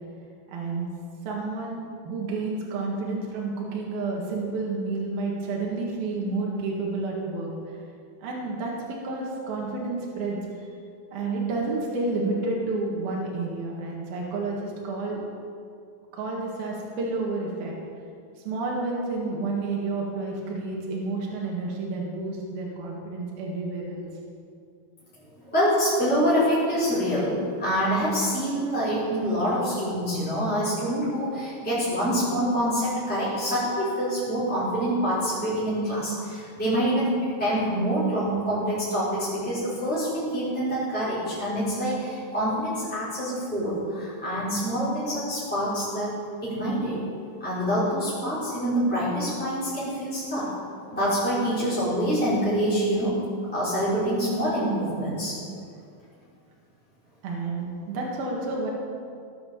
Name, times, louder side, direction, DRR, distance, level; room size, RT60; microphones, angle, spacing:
voice 1, 0.5-0.9 1.3-7.8 8.2-10.7 11.1-15.2 16.1-17.7 18.5-24.1 57.2-58.7, right 3 dB, 75° right, -2 dB, 3.7 m, -30 dB
voice 2, 25.4-46.1 46.4-47.0 47.4-50.5 50.9-53.2 53.5-55.4, equal, ahead, -11 dB, 4.2 m, -26 dB
17.5 x 8.7 x 7.2 m, 2.4 s
omnidirectional pair, 4.4 m